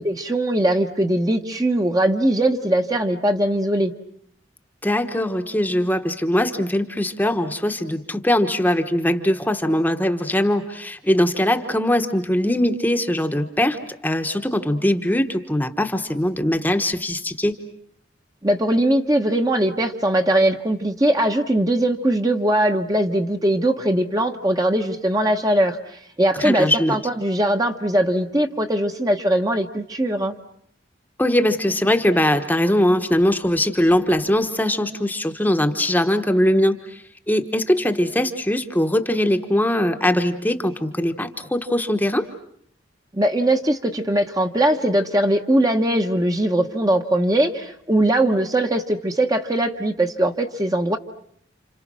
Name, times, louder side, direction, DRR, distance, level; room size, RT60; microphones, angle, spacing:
voice 1, 0.0-3.9 18.4-25.8 26.2-30.3 43.1-51.0, right 1 dB, 20° right, 5 dB, 1.1 m, -20 dB
voice 2, 4.8-17.6 26.3-27.0 31.2-42.3, left 1 dB, 10° left, 6 dB, 1.1 m, -21 dB
30.0 x 27.5 x 6.2 m, 0.67 s
head